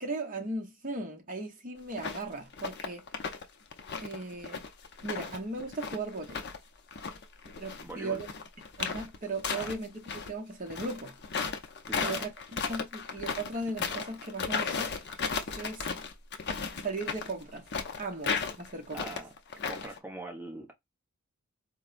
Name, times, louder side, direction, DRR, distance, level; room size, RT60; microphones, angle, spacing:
voice 1, 0.0-3.0 4.0-4.6 5.0-6.4 7.6-8.3 8.8-11.2 12.0-15.3 15.6-15.9 16.8-17.7 18.0-19.2, right 2 dB, 35° right, 0.8 m, -37 dB
sound 1, 1.9-2.2 2.5-3.4 3.7-6.6 6.9-10.3 10.7-20.0, left 5 dB, 50° left, 0.5 m, -35 dB
voice 2, 7.8-8.2 9.5-9.7 11.9-12.3 18.9-19.3 19.7-20.7, right 1 dB, 10° right, 0.9 m, -42 dB
4.2 x 2.1 x 2.4 m
head